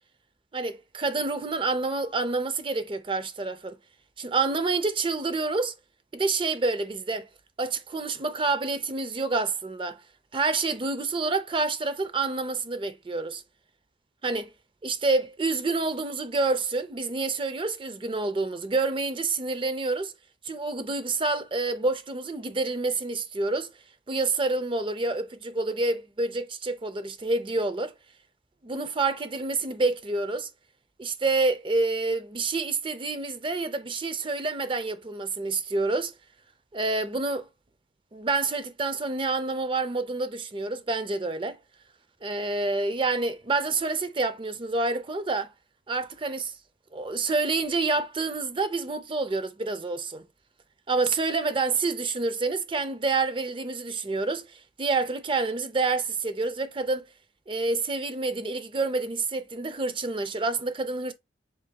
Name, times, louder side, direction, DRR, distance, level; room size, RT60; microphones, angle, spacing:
voice 1, 0.5-3.8 4.2-5.7 6.1-7.3 7.6-10.0 10.3-13.4 14.2-14.5 14.8-20.1 20.4-23.7 24.1-27.9 28.6-30.5 31.0-36.1 36.7-37.5 38.1-41.6 42.2-45.5 45.9-46.5 46.9-50.2 50.9-57.0 57.5-61.1, right 3 dB, 25° right, 0.4 m, -28 dB
7.3 x 2.6 x 2.2 m
head